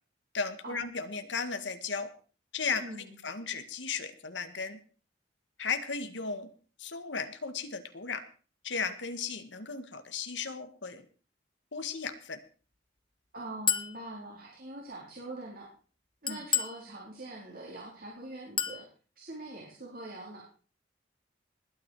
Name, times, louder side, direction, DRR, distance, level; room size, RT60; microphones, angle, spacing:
voice 1, 0.3-2.1 2.5-4.8 5.6-6.5 6.8-8.2 8.6-11.0 11.7-12.4 16.3-16.4, left 5 dB, 85° left, 8 dB, 1.7 m, -35 dB
voice 2, 2.8-3.1 13.3-15.7 16.2-18.8 19.2-20.4, right 2 dB, 55° right, -2 dB, 4.3 m, -43 dB
Chink clink, 13.7-14.0 16.3-16.8 18.6-18.8, left 8 dB, 30° left, 1.2 m, -29 dB
20.5 x 9.6 x 4.8 m, 0.39 s
head